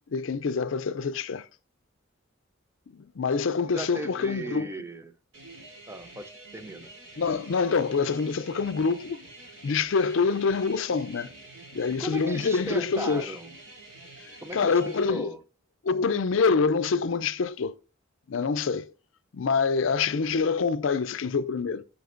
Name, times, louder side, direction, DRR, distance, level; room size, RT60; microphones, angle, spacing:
voice 1, 0.1-1.5 2.9-4.7 7.2-9.2 9.6-11.3 11.7-13.3 14.2-15.3 15.8-17.8 18.3-18.9 19.3-21.8, left 5 dB, 70° left, 0.5 m, -26 dB
voice 2, 3.7-5.1 5.9-6.9 12.0-13.5 14.4-15.4 19.8-19.9, right 2 dB, 10° right, 0.4 m, -37 dB
sound 1, 5.3-15.1, right 2 dB, 70° right, 3.1 m, -47 dB
14.0 x 5.1 x 2.5 m
head